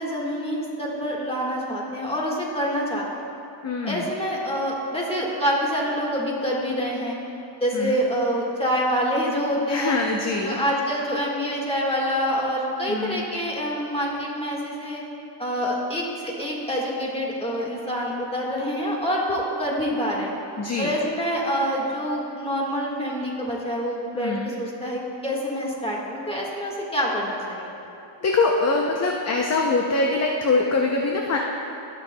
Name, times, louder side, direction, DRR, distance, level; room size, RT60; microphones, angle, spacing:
voice 1, 0.0-3.1 3.8-7.2 7.6-10.0 10.4-15.0 15.4-20.3 20.8-27.8, equal, 10° left, -3 dB, 1.5 m, -26 dB
voice 2, 3.6-4.1 7.7-8.0 9.7-10.6 12.9-13.2 20.6-20.9 24.1-24.5 28.2-31.4, left 3 dB, 35° left, 1 dB, 0.6 m, -23 dB
17.5 x 6.2 x 2.2 m, 2.8 s
cardioid pair, 110°, 48 cm